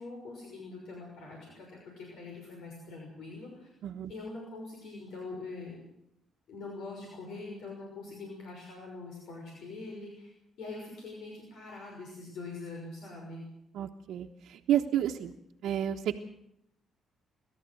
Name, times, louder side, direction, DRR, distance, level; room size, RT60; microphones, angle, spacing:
voice 1, 0.0-3.7 4.1-5.8 6.5-10.3 10.6-13.4, left 3 dB, 75° left, -1 dB, 6.1 m, -43 dB
voice 2, 13.7-15.3 15.6-16.2, right 11 dB, 80° right, -1 dB, 1.1 m, -30 dB
29.0 x 13.0 x 7.8 m, 0.80 s
cardioid pair, 90°, 0 cm